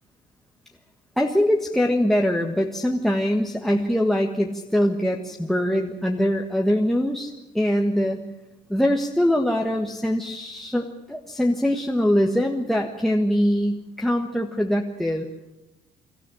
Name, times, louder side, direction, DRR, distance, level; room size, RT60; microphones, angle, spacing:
voice 1, 1.2-8.2 8.7-15.3, equal, ahead, 1 dB, 1.5 m, -23 dB
25.5 x 13.5 x 10.0 m, 0.97 s
cardioid pair, 110°, 17 cm